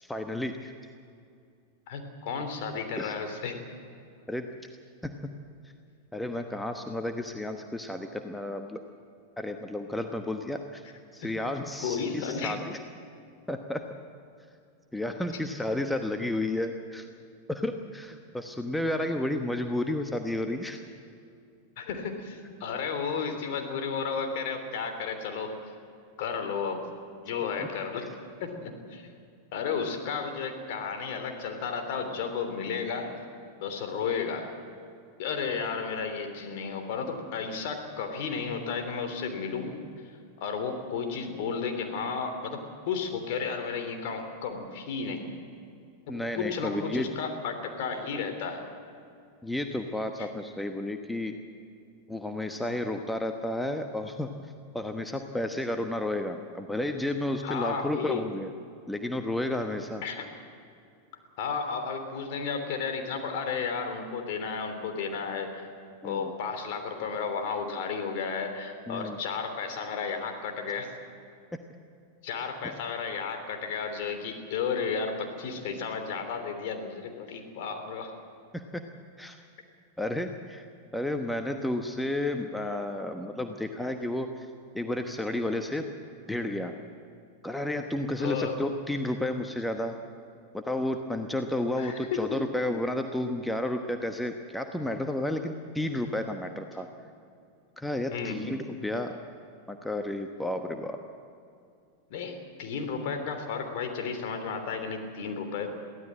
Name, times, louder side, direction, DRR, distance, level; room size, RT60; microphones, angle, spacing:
voice 1, 0.0-0.7 3.0-3.1 4.3-4.5 5.0-5.4 6.1-8.8 9.4-10.8 11.1-12.8 13.5-13.8 14.9-17.1 17.5-20.8 27.6-27.7 46.1-47.1 49.4-51.4 52.1-54.3 54.7-58.5 58.9-60.0 66.0-66.3 68.9-69.2 78.5-78.8 79.2-79.4 80.0-80.7 80.9-84.5 84.7-85.9 86.3-86.7 87.4-90.0 90.5-96.9 97.8-99.1 99.7-101.0, left 1 dB, 5° left, 6 dB, 1.1 m, -32 dB
voice 2, 1.9-3.6 11.8-12.6 21.8-25.7 26.2-26.9 27.2-28.0 28.4-29.1 29.5-33.1 33.6-34.5 35.2-39.7 40.0-45.4 46.3-48.7 57.4-58.2 60.0-60.3 61.4-65.7 66.0-70.9 72.2-78.1 88.2-88.5 91.8-92.4 98.1-98.4 102.1-105.7, left 5 dB, 50° left, 6 dB, 3.2 m, -33 dB
23.0 x 16.0 x 7.6 m, 2.4 s
figure-of-eight pair, 90°, 0 cm